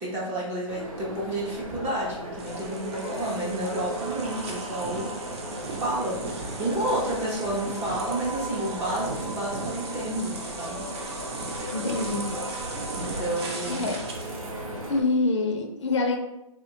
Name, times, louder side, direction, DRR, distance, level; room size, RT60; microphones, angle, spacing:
voice 1, 0.0-5.1 5.8-10.8 13.0-13.9, right 1 dB, 10° right, -5 dB, 0.5 m, -30 dB
sound 1, 0.7-15.0, right 1 dB, 80° right, 0.9 m, -36 dB
sound 2, 2.4-14.4, right 3 dB, 50° right, 0.7 m, -38 dB
voice 2, 11.7-12.3 13.7-14.0 14.9-16.2, left 3 dB, 55° left, 4 dB, 0.5 m, -25 dB
3.6 x 2.1 x 2.8 m, 0.88 s
hypercardioid pair, 155°, 18 cm